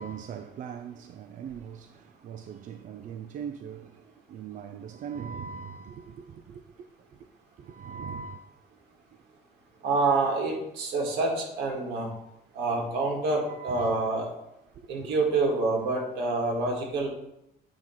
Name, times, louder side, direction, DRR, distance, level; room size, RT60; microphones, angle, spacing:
voice 1, 0.0-6.6 7.6-8.5 13.6-14.0 14.8-14.9, right 7 dB, 50° right, 0.4 m, -40 dB
voice 2, 9.8-12.1 12.6-14.3 14.9-17.1, right 3 dB, 80° right, 1.9 m, -27 dB
8.7 x 3.0 x 5.7 m
cardioid pair, 110°, 17 cm